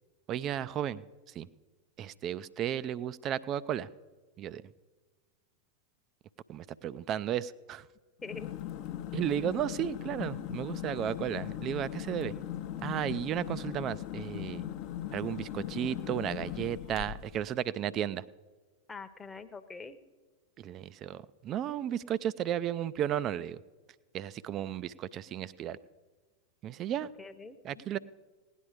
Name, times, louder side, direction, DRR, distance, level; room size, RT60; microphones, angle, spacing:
voice 1, 0.3-1.0 1.4-1.5 2.0-3.9 4.4-4.6 6.5-7.9 9.1-12.3 12.8-14.6 15.1-18.2 20.6-23.6 24.1-25.8 26.6-27.1 27.6-28.0, right 10 dB, 35° right, 17 dB, 0.4 m, -34 dB
sound 1, 8.2-17.4, left 12 dB, 45° left, 0.7 m, -39 dB
voice 2, 8.2-8.5 18.9-20.0 27.2-27.8, left 4 dB, 15° left, 9 dB, 0.9 m, -44 dB
17.5 x 10.0 x 4.9 m, 1.3 s
figure-of-eight pair, 90°, 0 cm